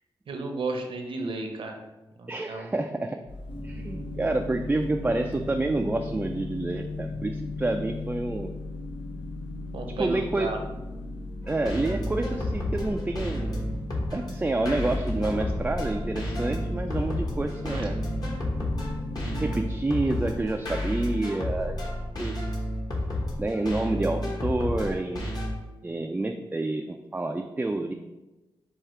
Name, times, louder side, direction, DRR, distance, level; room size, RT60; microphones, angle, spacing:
voice 1, 0.3-1.8 2.2-2.7 9.7-10.6 17.7-17.9, right 3 dB, 70° right, 3 dB, 0.7 m, -33 dB
voice 2, 2.3-3.2 3.6-8.5 10.0-10.5 11.5-13.6 14.1-18.0 19.4-21.8 22.2-22.3 23.4-25.2 25.8-27.9, right 2 dB, 15° right, 4 dB, 0.3 m, -28 dB
sound 1, 3.3-20.0, left 2 dB, 65° left, 1.0 m, -40 dB
sound 2, 3.5-19.6, left 3 dB, 85° left, 0.7 m, -39 dB
sound 3, 11.4-25.5, left 1 dB, 45° left, 1.2 m, -31 dB
4.8 x 2.4 x 4.4 m, 1.0 s
cardioid pair, 60°, 9 cm